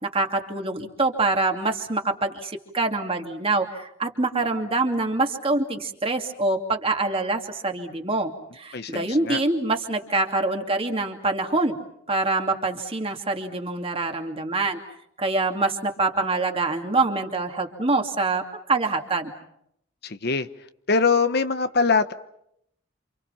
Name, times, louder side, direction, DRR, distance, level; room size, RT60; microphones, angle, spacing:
voice 1, 0.0-11.8 12.1-14.8 15.2-19.3, right 3 dB, 30° right, 4 dB, 2.7 m, -25 dB
voice 2, 8.7-9.4 20.0-20.5 20.9-22.1, left 4 dB, 55° left, 10 dB, 1.1 m, -22 dB
28.5 x 28.0 x 5.8 m, 0.74 s
head